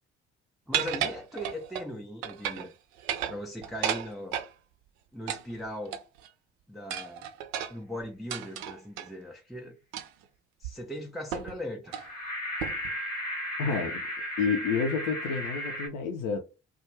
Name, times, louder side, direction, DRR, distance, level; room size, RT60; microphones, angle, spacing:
voice 1, 0.7-2.7 3.3-4.4 5.1-6.0 6.7-7.3 7.7-9.8 10.6-12.0, left 1 dB, ahead, 0.3 m, -39 dB
sound 1, 0.7-1.9 2.2-2.7 3.0-4.5 5.3-6.3 6.9-9.1 9.9-10.2 10.6-10.7 11.3-11.6 11.9-12.1 12.6-12.9, right 10 dB, 70° right, 0.5 m, -33 dB
sound 2, 11.9-15.9, equal, 85° left, 1.2 m, -35 dB
voice 2, 13.6-14.0 14.4-16.4, left 5 dB, 60° left, 0.5 m, -29 dB
2.3 x 2.3 x 3.1 m
figure-of-eight pair, 40°, 37 cm